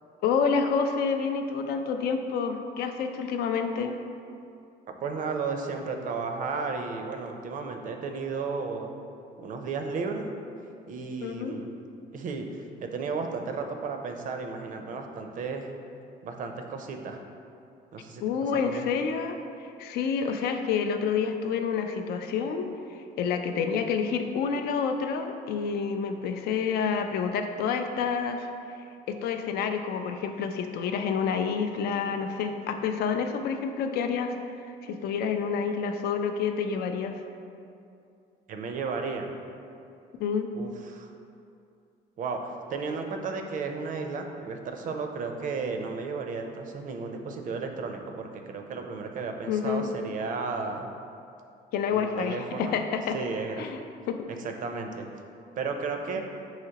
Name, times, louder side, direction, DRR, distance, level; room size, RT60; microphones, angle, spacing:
voice 1, 0.2-4.0 11.2-11.6 18.2-28.5 29.1-34.3 34.8-37.1 40.2-40.5 49.5-49.9 51.7-53.2 53.6-53.8 54.1-54.2, left 6 dB, 70° left, 6 dB, 0.4 m, -28 dB
voice 2, 4.9-9.0 9.4-10.3 10.9-11.7 12.1-12.5 12.8-15.7 16.2-17.2 17.9-18.2 18.5-18.8 38.5-39.3 40.6-41.1 42.2-50.9 51.9-52.8 53.1-53.7 54.4-55.1 55.6-56.2, right 4 dB, 50° right, 4 dB, 0.5 m, -33 dB
5.7 x 2.9 x 2.8 m, 2.5 s
cardioid pair, 110°, 17 cm